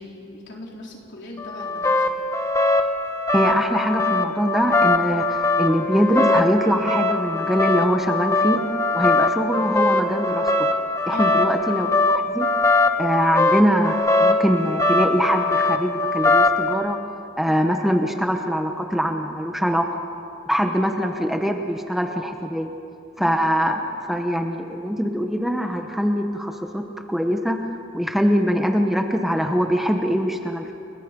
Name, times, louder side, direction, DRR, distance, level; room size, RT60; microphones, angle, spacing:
voice 1, 0.0-2.0 11.1-11.6 20.6-20.8, left 1 dB, 60° left, -1 dB, 4.1 m, -37 dB
sound 1, 1.4-16.7, left 2 dB, 15° left, 1.4 m, -21 dB
voice 2, 3.3-8.6 8.9-10.7 11.1-12.5 13.0-13.9 14.2-17.0 17.4-20.0 20.5-22.7 23.2-27.7 27.9-30.7, equal, ahead, 4 dB, 1.0 m, -23 dB
30.0 x 22.0 x 5.3 m, 2.7 s
head